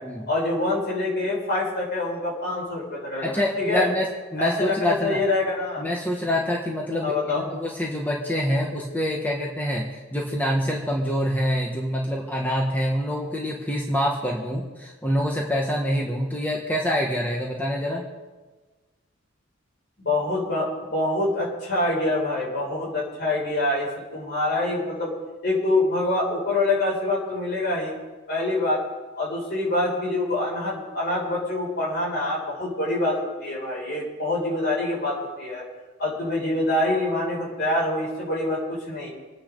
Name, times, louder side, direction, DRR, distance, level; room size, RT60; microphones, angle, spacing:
voice 1, 0.3-3.9 4.4-5.8 7.0-7.4 20.0-25.1 25.4-28.0 28.3-28.8 29.2-35.6 36.0-39.1, left 2 dB, 55° left, -4 dB, 6.5 m, -25 dB
voice 2, 3.2-5.2 5.8-18.0, equal, 10° left, -2 dB, 1.6 m, -26 dB
27.5 x 10.0 x 4.0 m, 1.3 s
head